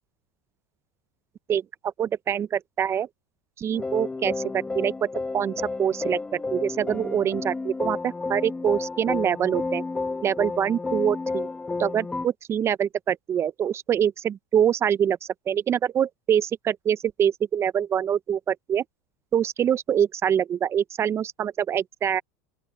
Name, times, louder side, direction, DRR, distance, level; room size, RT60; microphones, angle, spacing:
voice 1, 1.5-3.1 3.6-5.1 5.3-5.5 5.8-9.8 10.2-11.5 11.8-18.8 19.3-22.2, right 9 dB, 35° right, 0.7 m, -25 dB
sound 1, 3.7-12.3, left 3 dB, 15° left, 1.3 m, -31 dB
open air
supercardioid pair, 110°, 8 cm